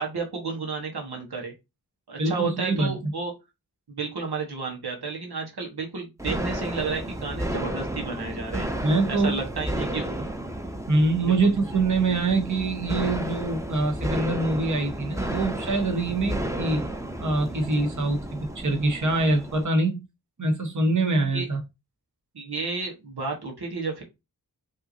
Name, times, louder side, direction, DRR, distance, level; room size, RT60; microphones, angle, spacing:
voice 1, 0.0-1.5 2.1-3.3 3.9-10.2 11.3-11.5 21.3-21.5 22.3-24.0, right 4 dB, 90° right, 1.4 m, -32 dB
voice 2, 2.2-3.1 8.8-9.4 10.9-16.8 17.2-20.0 20.4-21.6, right 2 dB, 50° right, 1.2 m, -24 dB
sound 1, 6.2-19.7, right 1 dB, 10° right, 0.7 m, -32 dB
5.5 x 2.9 x 2.7 m
wide cardioid pair, 55°, 38 cm